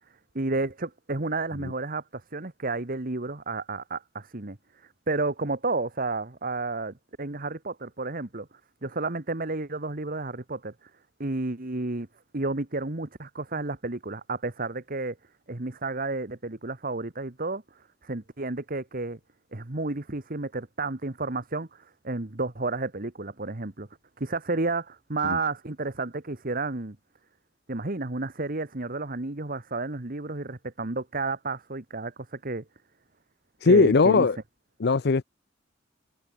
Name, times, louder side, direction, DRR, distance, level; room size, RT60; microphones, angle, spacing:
voice 1, 0.3-8.5 8.8-10.9 11.2-12.1 12.3-15.2 15.5-19.2 19.5-23.9 24.2-27.0 27.7-32.6 33.6-34.3, right 3 dB, 45° right, 1.6 m, -31 dB
voice 2, 33.6-34.4 34.8-35.2, left 4 dB, 55° left, 0.6 m, -19 dB
head